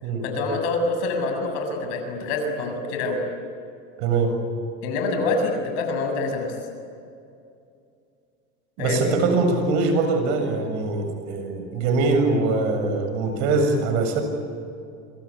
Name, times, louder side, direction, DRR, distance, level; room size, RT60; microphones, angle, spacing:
voice 1, 0.2-3.2 4.8-6.5 8.8-9.0, left 3 dB, 75° left, 4 dB, 7.3 m, -26 dB
voice 2, 4.0-4.4 8.8-14.2, right 3 dB, 70° right, 6 dB, 7.3 m, -22 dB
26.5 x 25.5 x 8.7 m, 2.5 s
supercardioid pair, 115°, 33 cm